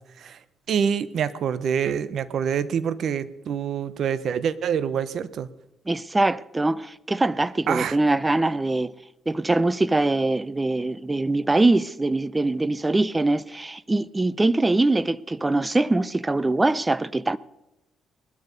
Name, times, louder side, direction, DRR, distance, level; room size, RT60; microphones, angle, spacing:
voice 1, 0.7-5.5 7.7-8.0, right 7 dB, 65° right, 0.9 m, -26 dB
voice 2, 5.9-8.9 9.3-17.4, right 2 dB, 15° right, 0.6 m, -23 dB
20.0 x 12.5 x 5.3 m
cardioid pair, 90°, 0 cm